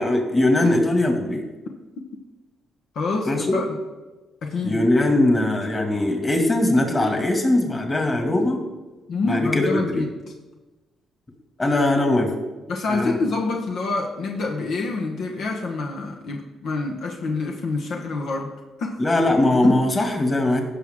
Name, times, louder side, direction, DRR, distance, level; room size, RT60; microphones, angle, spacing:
voice 1, 0.0-1.4 3.3-3.6 4.6-8.6 9.3-10.1 11.6-12.3 12.9-13.2 19.0-20.6, left 1 dB, 25° left, 3 dB, 2.2 m, -20 dB
voice 2, 2.9-3.8 4.4-4.8 9.1-10.1 12.7-18.5 18.8-19.0 19.6-19.8, left 3 dB, 70° left, 1 dB, 1.1 m, -27 dB
16.0 x 6.2 x 3.7 m, 1.2 s
cardioid pair, 90°, 0 cm